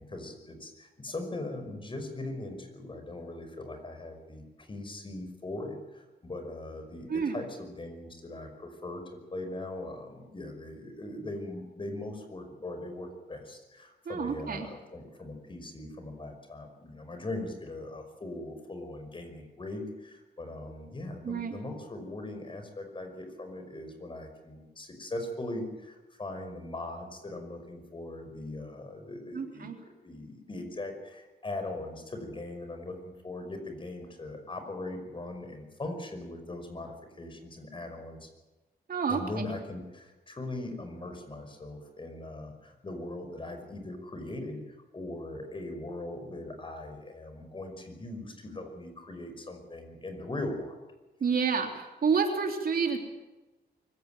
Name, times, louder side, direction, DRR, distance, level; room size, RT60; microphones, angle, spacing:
voice 1, 0.0-9.0 9.3-38.3 39.1-50.8, left 2 dB, 30° left, 6 dB, 5.5 m, -40 dB
voice 2, 7.1-7.4 14.1-14.7 21.2-21.6 29.3-29.8 38.9-39.4 51.2-53.0, right 5 dB, 60° right, 3 dB, 3.4 m, -29 dB
24.5 x 16.0 x 9.2 m, 1.1 s
wide cardioid pair, 110°, 17 cm